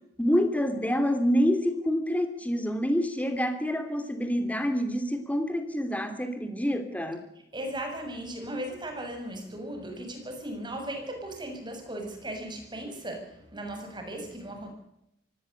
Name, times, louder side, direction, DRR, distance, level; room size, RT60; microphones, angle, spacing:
voice 1, 0.2-7.2, equal, 10° left, 8 dB, 3.0 m, -27 dB
voice 2, 7.5-14.7, right 1 dB, 25° right, 4 dB, 6.9 m, -37 dB
24.0 x 17.5 x 6.7 m, 0.80 s
head